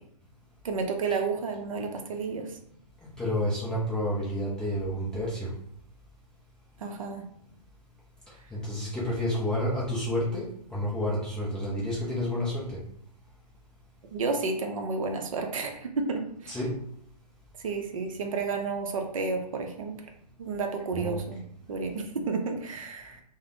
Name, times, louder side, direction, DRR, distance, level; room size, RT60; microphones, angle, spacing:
voice 1, 0.6-2.6 6.8-7.3 14.1-16.6 17.6-19.9 20.4-21.4 21.7-23.2, right 4 dB, 50° right, 4 dB, 0.5 m, -31 dB
voice 2, 3.2-5.5 8.5-10.4 10.7-12.8 16.5-16.7 20.9-21.2, left 1 dB, 5° left, -8 dB, 0.4 m, -29 dB
3.2 x 2.0 x 2.6 m, 0.69 s
figure-of-eight pair, 125°, 21 cm